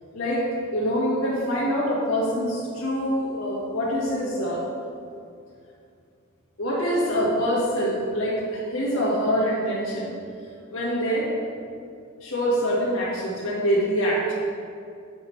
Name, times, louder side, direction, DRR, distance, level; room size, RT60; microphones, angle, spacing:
voice 1, 0.1-0.5 0.7-4.7 6.6-10.2 10.7-11.5 12.2-14.3, equal, 70° left, -5 dB, 1.7 m, -25 dB
9.5 x 6.3 x 3.3 m, 2.4 s
head